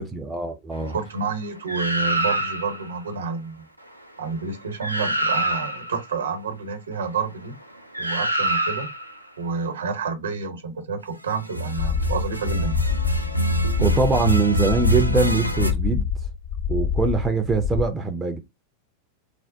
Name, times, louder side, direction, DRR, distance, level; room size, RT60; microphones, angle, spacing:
voice 1, 0.0-1.0 13.8-16.1 16.7-18.4, right 4 dB, 15° right, 0.5 m, -23 dB
voice 2, 0.9-3.6 4.2-7.6 8.0-8.9 9.4-12.9, right 5 dB, 70° right, 0.9 m, -29 dB
sound 1, 1.7-2.8 4.5-4.6 4.8-6.0 7.9-9.1 11.4-15.7, right 1 dB, 90° right, 0.4 m, -25 dB
sound 2, 11.8-17.8, left 7 dB, 40° left, 0.5 m, -26 dB
3.3 x 2.1 x 2.7 m
figure-of-eight pair, 90°, 0 cm